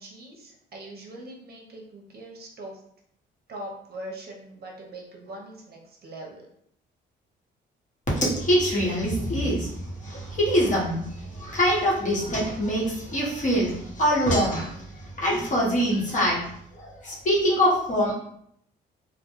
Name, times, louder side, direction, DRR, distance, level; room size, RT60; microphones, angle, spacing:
voice 1, 0.0-2.8 3.5-6.5, right 1 dB, 50° right, 0 dB, 0.6 m, -41 dB
voice 2, 8.1-9.7 10.0-11.1 11.3-14.7 15.2-16.4 17.0-18.1, equal, 40° left, -5 dB, 1.0 m, -24 dB
2.1 x 2.1 x 2.9 m, 0.70 s
cardioid pair, 90°, 20 cm